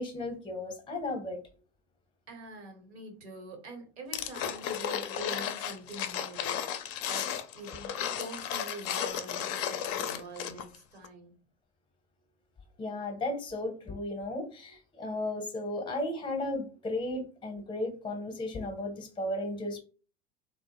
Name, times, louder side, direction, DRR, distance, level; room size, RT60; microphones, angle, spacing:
voice 1, 0.0-1.4 12.8-19.8, left 1 dB, 15° left, 0.7 m, -35 dB
voice 2, 2.3-11.3, right 2 dB, 80° right, 1.0 m, -45 dB
sound 1, 4.1-10.8 11.0-11.1, left 9 dB, 45° left, 0.4 m, -34 dB
2.1 x 2.0 x 2.9 m
hypercardioid pair, 90°, 32 cm